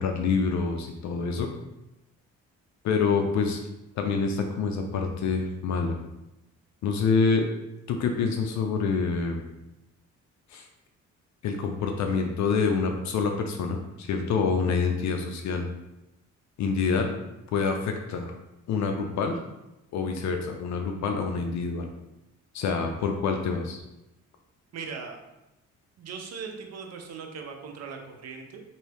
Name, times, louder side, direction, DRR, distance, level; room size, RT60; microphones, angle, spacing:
voice 1, 0.0-1.5 2.8-3.6 4.0-6.0 6.8-7.5 7.9-9.4 10.5-10.7 11.4-15.7 16.6-17.1 17.5-18.3 18.7-19.4 19.9-21.9 22.5-23.8, left 5 dB, 65° left, 4 dB, 0.5 m, -26 dB
voice 2, 24.7-25.2 26.0-28.6, right 5 dB, 55° right, 3 dB, 0.8 m, -39 dB
4.5 x 2.7 x 3.4 m, 0.93 s
cardioid pair, 90°, 30 cm